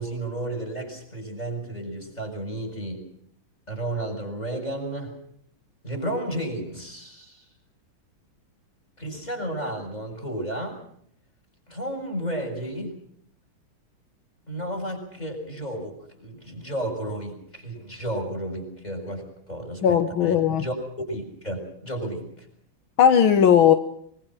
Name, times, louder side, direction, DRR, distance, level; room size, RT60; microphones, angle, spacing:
voice 1, 0.0-3.0 3.7-5.2 5.8-7.4 9.0-10.8 11.7-13.0 14.5-20.8 21.1-22.5, right 1 dB, 20° left, 3 dB, 7.2 m, -32 dB
voice 2, 19.8-20.6 23.0-23.7, left 8 dB, 75° left, 9 dB, 1.9 m, -17 dB
24.0 x 23.5 x 6.2 m, 0.67 s
omnidirectional pair, 2.3 m